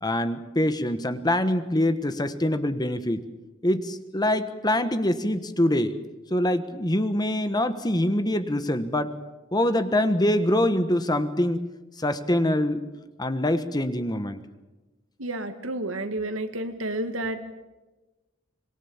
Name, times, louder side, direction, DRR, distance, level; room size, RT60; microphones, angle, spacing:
voice 1, 0.0-3.2 3.6-6.0 6.3-9.1 9.5-11.6 12.0-12.8 13.2-14.4, left 1 dB, 20° left, 10 dB, 1.3 m, -24 dB
voice 2, 15.2-17.4, right 1 dB, 80° right, 8 dB, 2.1 m, -30 dB
25.5 x 22.0 x 7.3 m, 1.1 s
head